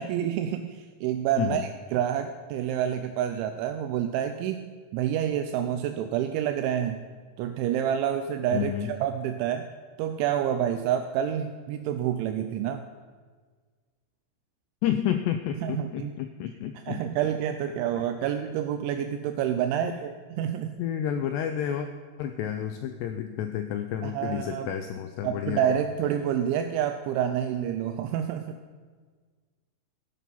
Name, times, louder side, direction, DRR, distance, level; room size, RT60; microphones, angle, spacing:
voice 1, 0.0-4.6 4.9-7.0 7.4-9.7 10.0-12.8 15.6-16.2 16.9-20.8 24.0-24.7 25.2-28.6, right 9 dB, 80° right, 8 dB, 2.9 m, -28 dB
voice 2, 8.5-8.9 14.8-17.0 17.9-18.0 19.8-20.0 20.8-21.9 22.2-25.7, left 10 dB, 90° left, 7 dB, 2.4 m, -30 dB
15.5 x 10.5 x 5.5 m, 1.5 s
omnidirectional pair, 5.6 m